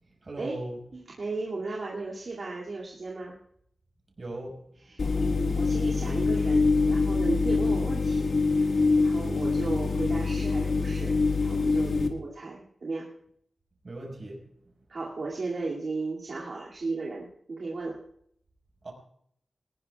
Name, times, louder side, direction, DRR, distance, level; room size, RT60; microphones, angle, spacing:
voice 1, 0.2-0.8 4.2-4.5 13.8-14.4 18.8-18.9, right 1 dB, 45° right, 0 dB, 5.3 m, -38 dB
voice 2, 0.9-3.4 4.8-13.1 14.9-18.0, right 3 dB, 65° right, -5 dB, 2.5 m, -35 dB
sound 1, 5.0-12.1, left 4 dB, 70° left, 1.7 m, -25 dB
21.5 x 19.5 x 2.4 m, 0.69 s
wide cardioid pair, 105°, 0 cm